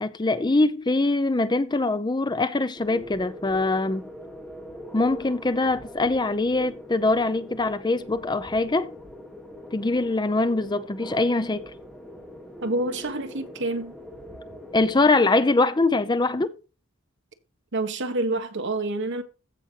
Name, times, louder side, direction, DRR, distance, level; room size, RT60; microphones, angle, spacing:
voice 1, 0.0-4.1 4.9-8.9 9.7-11.7 14.7-16.5, left 2 dB, 20° left, 0.6 m, -23 dB
sound 1, 2.7-15.0, equal, 5° left, 2.8 m, -42 dB
voice 2, 12.6-13.9 17.7-19.2, right 2 dB, 60° right, 1.6 m, -27 dB
15.0 x 6.0 x 2.9 m
head